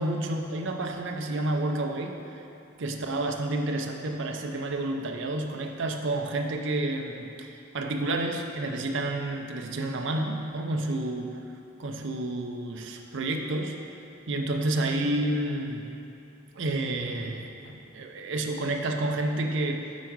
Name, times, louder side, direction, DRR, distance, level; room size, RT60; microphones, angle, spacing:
voice 1, 0.0-2.1 2.8-11.4 11.8-13.8 14.3-15.9 16.5-19.9, right 2 dB, 65° right, 3 dB, 0.6 m, -30 dB
8.2 x 4.7 x 4.7 m, 2.7 s
head